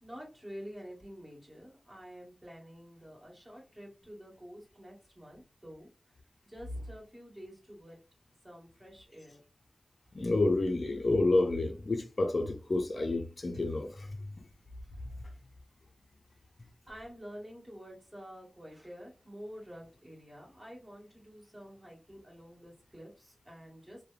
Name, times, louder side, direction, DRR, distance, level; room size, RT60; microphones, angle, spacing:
voice 1, 0.0-5.9 6.4-8.0 8.4-9.4 14.8-14.9 16.9-24.0, equal, 15° right, 1.5 m, -49 dB
voice 2, 10.1-14.1, left 2 dB, 55° left, 0.5 m, -29 dB
2.9 x 2.1 x 2.4 m
cardioid pair, 45°, 0 cm